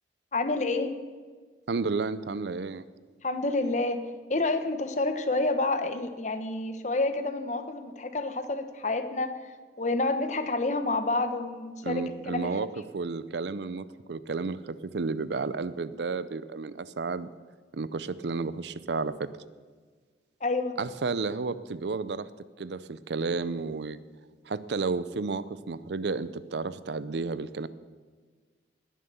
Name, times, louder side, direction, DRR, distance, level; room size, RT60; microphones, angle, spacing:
voice 1, 0.3-0.9 3.2-9.4 9.8-12.5 20.4-20.7, left 2 dB, 40° left, 9 dB, 1.0 m, -29 dB
voice 2, 1.7-2.8 11.8-12.7 12.9-17.3 17.7-19.3 20.8-22.3 22.6-24.0 24.4-27.7, right 4 dB, 70° right, 16 dB, 0.5 m, -32 dB
19.5 x 7.5 x 6.9 m, 1.5 s
head